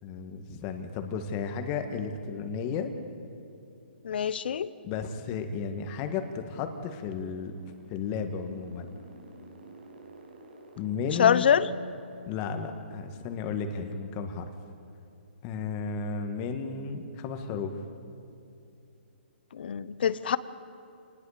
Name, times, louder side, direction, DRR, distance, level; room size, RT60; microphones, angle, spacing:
voice 1, 0.0-2.9 4.8-7.5 7.9-8.9 10.8-11.4 12.3-14.5 15.4-17.7, left 5 dB, 30° left, 6 dB, 1.7 m, -33 dB
voice 2, 4.0-4.7 11.2-11.7 19.5-20.4, left 8 dB, 60° left, 17 dB, 0.8 m, -24 dB
sound 1, 6.8-13.1, right 2 dB, 75° right, 5.5 m, -52 dB
28.0 x 20.0 x 5.1 m, 2.7 s
hypercardioid pair, 150°, 6 cm